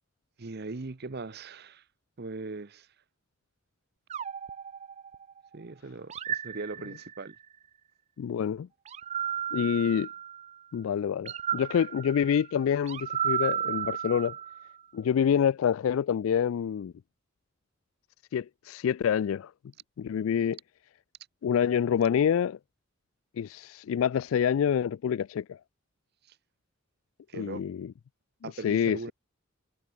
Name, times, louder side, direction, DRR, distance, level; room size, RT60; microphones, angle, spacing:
voice 1, 0.4-1.8 2.2-2.9 5.5-7.3 27.3-27.6 28.4-29.1, right 3 dB, 50° right, 0.8 m, -39 dB
sound 1, 4.1-5.5 6.1-7.4 8.9-10.6 11.2-14.8, right 9 dB, 30° right, 0.3 m, -34 dB
voice 2, 8.2-8.7 9.5-10.1 10.7-14.3 14.9-16.9 18.3-19.5 20.0-20.6 21.4-22.6 23.4-25.6 27.3-27.9 28.4-29.0, left 8 dB, 75° left, 0.3 m, -27 dB
head